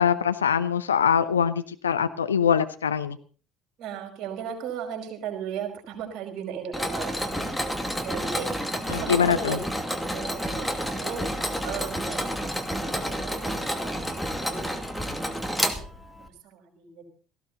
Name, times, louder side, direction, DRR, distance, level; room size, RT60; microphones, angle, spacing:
voice 1, 0.0-3.2 8.9-9.6, left 7 dB, 80° left, 11 dB, 0.7 m, -23 dB
voice 2, 3.8-9.6 10.0-11.3 11.6-15.3 15.5-17.0, right 8 dB, 50° right, 3 dB, 5.1 m, -37 dB
Mechanisms, 6.7-16.3, equal, 5° left, 2.4 m, -30 dB
18.0 x 15.5 x 4.0 m, 0.40 s
figure-of-eight pair, 60°, 0 cm